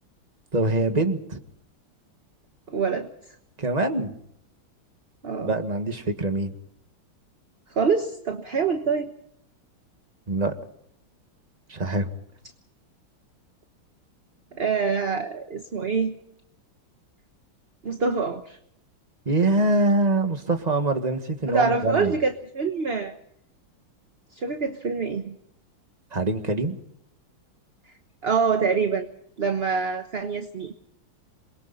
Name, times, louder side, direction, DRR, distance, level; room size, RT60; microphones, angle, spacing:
voice 1, 0.5-1.4 3.6-4.1 5.4-6.5 10.3-10.5 11.7-12.1 19.2-22.2 26.1-26.8, right 2 dB, 20° right, 7 dB, 1.7 m, -24 dB
voice 2, 2.7-3.1 5.2-5.5 7.7-9.1 14.6-16.1 17.8-18.6 21.5-23.1 24.3-25.4 28.2-29.1 29.4-30.7, right 5 dB, 35° right, 6 dB, 1.1 m, -25 dB
27.5 x 23.0 x 4.2 m, 0.70 s
omnidirectional pair, 2.3 m